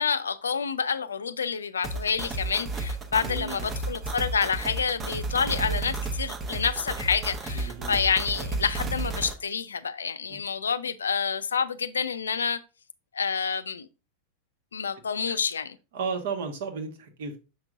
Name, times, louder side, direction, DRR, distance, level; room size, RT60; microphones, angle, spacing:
voice 1, 0.0-12.6 13.1-13.9 14.7-15.8, left 6 dB, 70° left, 0.4 m, -28 dB
sound 1, 1.8-9.3, right 3 dB, 20° right, 1.0 m, -32 dB
voice 2, 3.2-3.6 7.5-8.0 10.3-10.4 15.3-15.4 15.9-17.4, right 5 dB, 55° right, 1.3 m, -34 dB
7.1 x 5.9 x 2.5 m
figure-of-eight pair, 90°, 0 cm